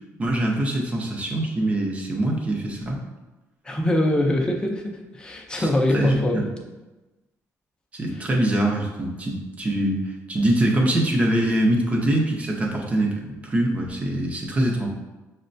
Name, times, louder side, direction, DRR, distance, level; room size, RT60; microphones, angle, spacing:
voice 1, 0.2-3.0 5.6-6.5 7.9-14.9, right 1 dB, 20° right, -1 dB, 0.7 m, -23 dB
voice 2, 3.6-6.5, left 1 dB, 15° left, 1 dB, 0.5 m, -23 dB
6.4 x 2.1 x 2.6 m, 1.1 s
cardioid pair, 145°, 6 cm